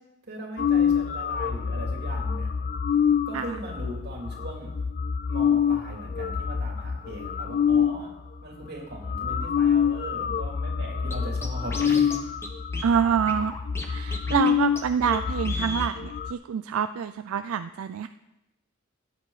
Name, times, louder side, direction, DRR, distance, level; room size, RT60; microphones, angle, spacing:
voice 1, 0.3-2.5 3.3-4.7 5.3-8.1 8.4-12.2, right 1 dB, 50° right, -1 dB, 3.0 m, -39 dB
sound 1, 0.6-8.0 8.6-8.7 8.9-16.3, left 7 dB, 40° left, 0.4 m, -26 dB
Scratching (performance technique), 11.1-11.2 11.4-12.2 12.4-12.5 12.7-13.9 14.1-14.5 14.8-14.9 15.1-15.2 15.4-15.9, left 1 dB, 10° left, 1.1 m, -35 dB
voice 2, 12.8-13.6 13.9-18.1, right 7 dB, 85° right, 11 dB, 0.4 m, -26 dB
15.5 x 9.6 x 4.1 m, 0.97 s
head